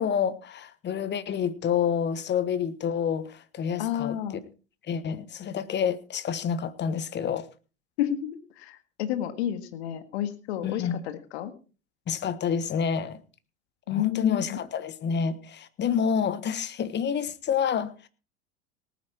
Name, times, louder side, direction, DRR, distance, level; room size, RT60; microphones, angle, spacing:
voice 1, 0.0-4.2 4.9-7.5 10.6-11.0 12.1-13.2 13.9-18.1, left 7 dB, 30° left, 15 dB, 1.3 m, -28 dB
voice 2, 3.8-4.4 8.0-11.5 13.9-14.6, left 11 dB, 65° left, 10 dB, 1.8 m, -30 dB
18.5 x 9.3 x 4.6 m, 0.35 s
hypercardioid pair, 85°, 35 cm